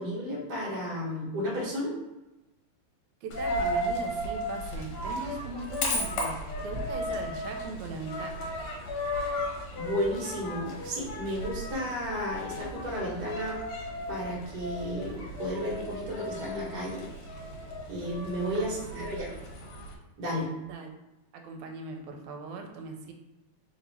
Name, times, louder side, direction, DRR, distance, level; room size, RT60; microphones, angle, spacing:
voice 1, 0.0-1.9 9.7-13.6 14.1-17.0 17.9-19.3 20.2-20.5, equal, 45° right, -5 dB, 1.3 m, -33 dB
voice 2, 3.2-8.3 18.9-19.1 20.6-20.9 21.3-23.1, right 3 dB, 80° right, 4 dB, 1.9 m, -39 dB
Coin (dropping), 3.3-19.9, left 1 dB, 70° left, 1.9 m, -35 dB
4.5 x 2.7 x 4.1 m, 1.0 s
omnidirectional pair, 3.4 m